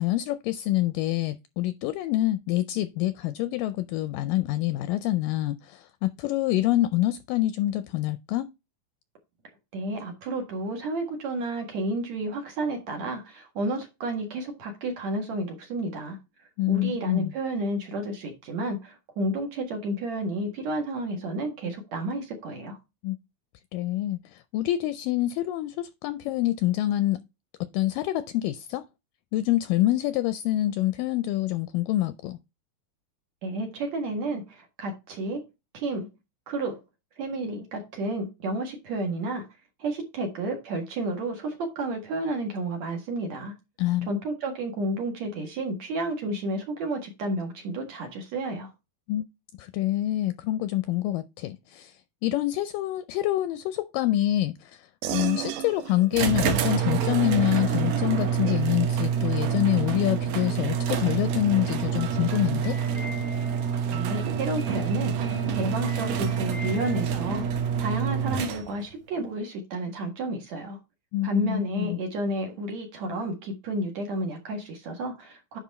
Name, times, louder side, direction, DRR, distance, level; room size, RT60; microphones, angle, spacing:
voice 1, 0.0-8.5 16.6-17.3 23.0-23.2 23.7-27.2 27.7-28.9 29.3-32.4 43.8-44.1 49.1-49.3 49.6-51.9 52.2-62.8 71.1-72.0, left 15 dB, 80° left, 2.0 m, -26 dB
voice 2, 9.7-16.2 16.7-22.8 33.4-35.4 35.7-36.1 36.5-36.8 37.2-39.5 39.8-43.5 44.1-48.7 63.9-67.5 67.8-70.8 71.2-75.6, right 1 dB, 55° right, 2.7 m, -31 dB
sound 1, 55.0-64.9, right 13 dB, 85° right, 2.8 m, -40 dB
sound 2, 56.1-68.9, right 7 dB, 70° right, 1.7 m, -27 dB
sound 3, 61.9-67.0, equal, 15° right, 1.9 m, -45 dB
9.9 x 4.2 x 4.2 m
omnidirectional pair, 4.2 m